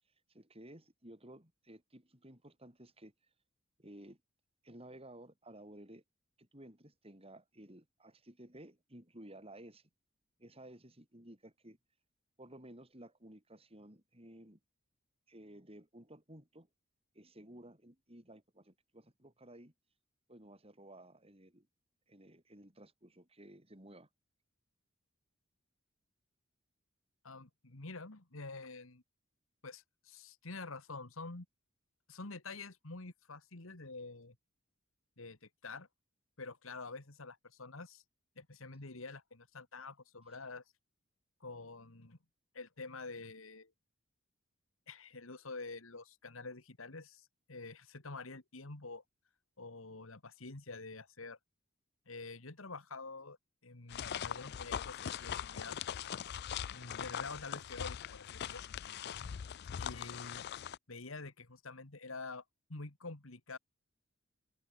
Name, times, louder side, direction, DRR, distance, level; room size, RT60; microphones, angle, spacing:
voice 1, 0.3-3.1 3.8-4.2 4.6-6.0 6.4-9.9 10.4-11.8 12.4-14.6 15.3-16.7 17.1-19.7 20.3-21.7 22.1-24.1, right 1 dB, 30° right, 7.5 m, -55 dB
voice 2, 27.2-29.0 29.6-31.5 32.1-34.4 35.2-35.9 36.4-38.0 38.4-40.6 41.4-42.2 42.5-43.7 44.9-49.0 49.6-51.4 52.1-53.4 53.6-55.8 56.7-58.6 59.8-60.5 60.9-62.4 62.7-63.6, left 3 dB, 75° left, 2.1 m, -47 dB
sound 1, 53.9-60.8, left 9 dB, 50° left, 0.4 m, -41 dB
head